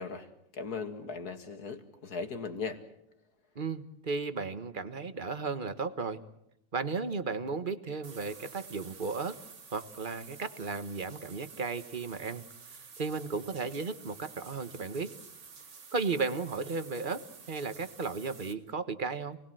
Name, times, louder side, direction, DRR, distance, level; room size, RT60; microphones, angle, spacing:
voice 1, 0.0-2.8, left 5 dB, 65° left, 6 dB, 2.7 m, -38 dB
voice 2, 3.5-6.2 6.7-9.4 9.7-12.4 12.7-15.2 15.9-19.4, right 4 dB, 30° right, 11 dB, 1.3 m, -35 dB
sound 1, 8.0-18.5, right 5 dB, 85° right, 2.7 m, -51 dB
28.5 x 20.0 x 7.8 m, 0.79 s
omnidirectional pair, 1.8 m